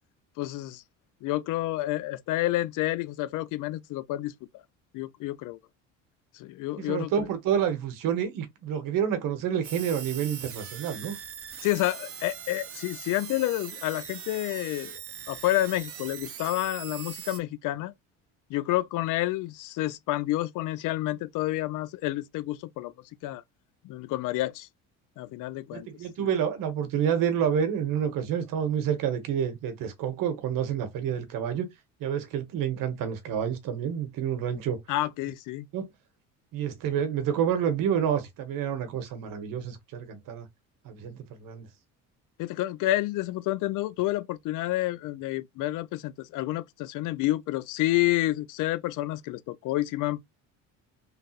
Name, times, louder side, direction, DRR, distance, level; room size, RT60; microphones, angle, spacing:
voice 1, 0.4-0.8 1.2-4.3 4.9-5.6 6.3-7.3 11.6-15.0 15.3-17.9 18.5-22.9 23.2-23.4 23.8-24.7 25.2-25.9 26.2-26.3 34.9-35.7 42.4-50.2, left 16 dB, 60° left, 0.4 m, -29 dB
voice 2, 6.9-11.2 25.7-31.6 32.0-34.8 35.7-35.8 36.5-40.5 40.8-41.6, right 8 dB, 70° right, 1.2 m, -28 dB
sound 1, 9.6-17.4, right 8 dB, 40° right, 0.8 m, -41 dB
3.2 x 2.6 x 2.4 m
supercardioid pair, 85°, 35 cm